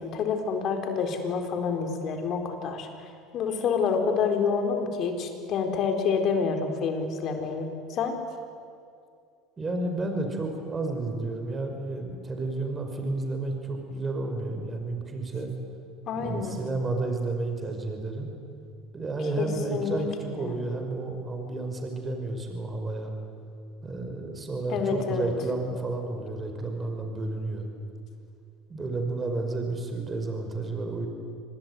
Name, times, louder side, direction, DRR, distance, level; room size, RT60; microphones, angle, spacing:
voice 1, 0.0-2.9 3.3-8.1 16.1-16.6 19.4-20.0 20.4-20.5 24.7-25.3, left 5 dB, 50° left, 5 dB, 4.2 m, -28 dB
voice 2, 9.6-15.5 16.2-18.3 18.9-23.1 23.8-27.7 28.7-31.1, right 2 dB, 25° right, 4 dB, 5.4 m, -31 dB
25.5 x 20.0 x 9.6 m, 2.4 s
supercardioid pair, 90°, 0 cm